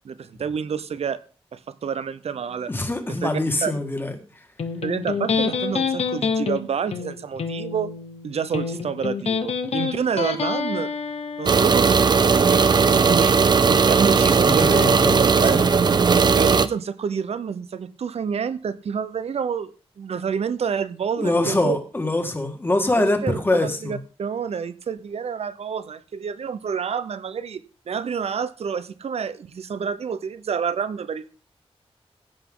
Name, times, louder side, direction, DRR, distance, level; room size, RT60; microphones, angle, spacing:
voice 1, 0.0-1.2 1.5-2.7 3.2-3.3 3.6-3.7 4.8-7.9 8.2-10.9 11.4-12.2 12.5-15.0 15.4-15.6 16.3-19.7 20.0-21.8 23.0-31.3, right 7 dB, 75° right, 14 dB, 0.8 m, -28 dB
voice 2, 2.7-4.2 14.4-15.2 15.5-15.7 21.2-24.0, left 2 dB, 20° left, 5 dB, 1.9 m, -23 dB
Electric guitar, 4.6-11.6, left 5 dB, 85° left, 1.4 m, -27 dB
sound 1, 11.5-16.7, right 5 dB, 45° right, 0.6 m, -17 dB
16.0 x 8.2 x 3.8 m, 0.38 s
wide cardioid pair, 150°, 11 cm